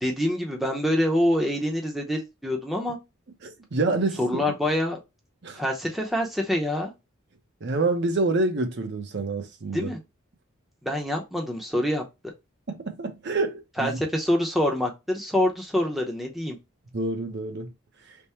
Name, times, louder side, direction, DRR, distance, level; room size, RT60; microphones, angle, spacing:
voice 1, 0.0-3.0 4.2-5.0 5.6-6.9 9.7-10.0 10.8-12.0 13.8-16.6, left 1 dB, ahead, 0.7 m, -26 dB
voice 2, 3.4-4.4 5.4-5.6 7.6-9.9 12.7-14.0 16.9-17.7 18.1-18.2, right 3 dB, 55° right, 0.6 m, -27 dB
3.5 x 2.1 x 4.2 m
head